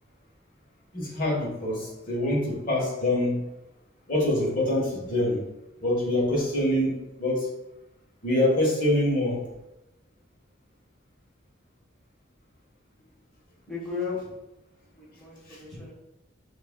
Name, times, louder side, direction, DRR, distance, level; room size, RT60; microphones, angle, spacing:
voice 1, 0.9-3.4 4.1-5.4 5.8-7.5 8.2-9.4 15.5-15.6, left 1 dB, 45° left, -3 dB, 1.2 m, -25 dB
voice 2, 13.7-14.4 14.9-15.9, left 5 dB, ahead, -6 dB, 1.2 m, -35 dB
6.1 x 2.4 x 2.2 m, 0.93 s
head